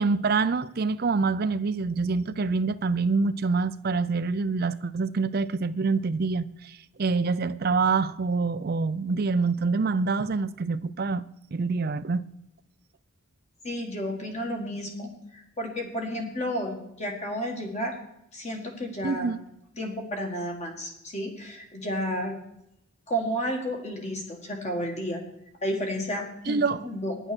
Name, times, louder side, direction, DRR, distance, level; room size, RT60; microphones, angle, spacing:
voice 1, 0.0-11.2 11.5-12.2 19.0-19.4 26.5-26.8, right 4 dB, 45° right, 0.4 m, -26 dB
voice 2, 13.6-17.9 18.3-19.3 19.8-22.4 23.1-25.2 25.6-27.3, equal, 30° left, 2.0 m, -32 dB
12.0 x 10.0 x 6.2 m
head